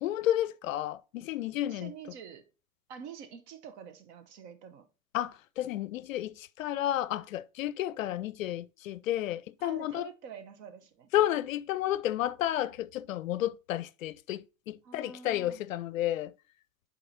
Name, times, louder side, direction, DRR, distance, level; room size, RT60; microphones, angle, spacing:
voice 1, 0.0-1.9 5.1-10.1 11.1-16.3, left 13 dB, 70° left, 0.5 m, -31 dB
voice 2, 1.6-2.5 2.9-4.9 9.6-11.1 14.8-15.6, right 7 dB, 50° right, 1.0 m, -47 dB
10.5 x 4.1 x 2.8 m
figure-of-eight pair, 85°, 42 cm